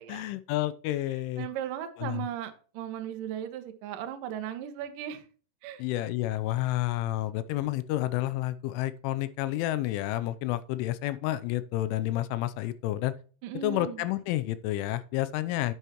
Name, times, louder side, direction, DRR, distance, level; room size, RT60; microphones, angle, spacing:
voice 1, 0.1-1.5 2.0-2.3 5.8-13.1 13.6-15.7, left 15 dB, 85° left, 3.1 m, -30 dB
voice 2, 1.4-5.2 5.6-5.8 13.4-14.0, right 10 dB, 80° right, 1.9 m, -37 dB
9.5 x 8.4 x 3.0 m
omnidirectional pair, 5.6 m